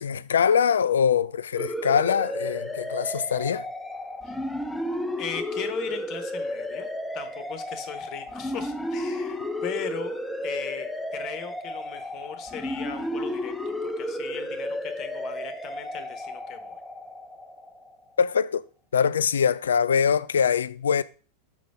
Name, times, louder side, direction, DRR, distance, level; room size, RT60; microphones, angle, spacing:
voice 1, 0.0-3.6 18.2-18.6 18.9-21.0, left 7 dB, 65° left, 0.3 m, -23 dB
sound 1, 1.6-18.0, left 1 dB, 5° left, 0.6 m, -33 dB
voice 2, 5.2-10.2 10.4-10.9 11.1-16.8, left 8 dB, 35° left, 1.0 m, -38 dB
6.4 x 4.0 x 4.8 m
figure-of-eight pair, 90°, 0 cm